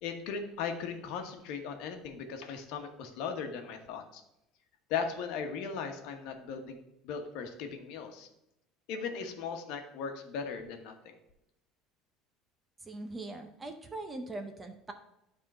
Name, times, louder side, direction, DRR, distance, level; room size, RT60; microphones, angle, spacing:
voice 1, 0.0-4.2 4.9-8.3 8.9-11.2, left 6 dB, 60° left, 5 dB, 1.2 m, -38 dB
voice 2, 12.8-14.9, right 2 dB, 15° right, 6 dB, 0.7 m, -41 dB
10.5 x 3.7 x 5.5 m, 0.86 s
cardioid pair, 165°, 0 cm